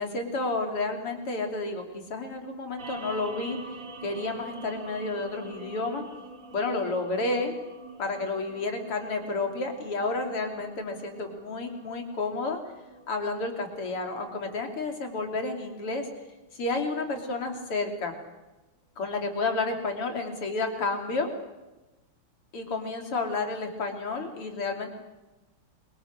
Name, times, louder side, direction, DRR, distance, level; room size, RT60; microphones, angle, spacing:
voice 1, 0.0-1.8 2.1-3.6 4.0-6.0 6.5-7.5 8.0-12.6 13.1-16.1 16.5-18.1 19.0-21.3 22.5-24.9, left 3 dB, 90° left, 4 dB, 4.1 m, -31 dB
sound 1, 2.8-17.3, right 2 dB, 35° right, 3.2 m, -46 dB
27.5 x 24.0 x 6.7 m, 1.1 s
omnidirectional pair, 2.4 m